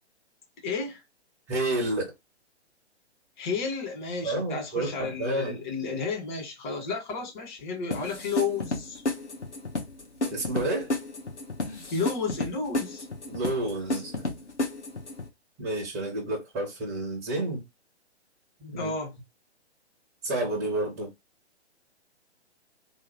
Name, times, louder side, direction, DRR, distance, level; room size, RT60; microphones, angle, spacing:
voice 1, 0.6-1.0 3.4-9.0 11.9-13.0 18.8-19.1, left 4 dB, 45° left, 1.7 m, -32 dB
voice 2, 1.5-2.1 4.2-5.6 10.3-10.9 13.3-14.2 15.6-17.6 18.6-18.9 20.2-21.1, right 1 dB, 5° right, 0.4 m, -30 dB
sound 1, 7.9-15.3, left 2 dB, 75° left, 1.1 m, -32 dB
3.0 x 2.0 x 2.9 m
figure-of-eight pair, 125°, 34 cm